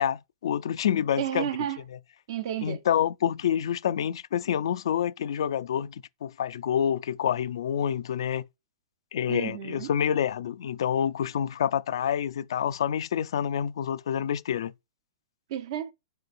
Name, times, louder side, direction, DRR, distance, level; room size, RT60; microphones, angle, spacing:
voice 1, 0.0-1.5 2.6-8.4 9.1-14.7, left 9 dB, 70° left, 0.3 m, -27 dB
voice 2, 1.2-1.8 2.3-2.8 9.3-9.9 15.5-15.9, right 11 dB, 55° right, 0.7 m, -31 dB
4.6 x 3.8 x 2.5 m
hypercardioid pair, 125°, 3 cm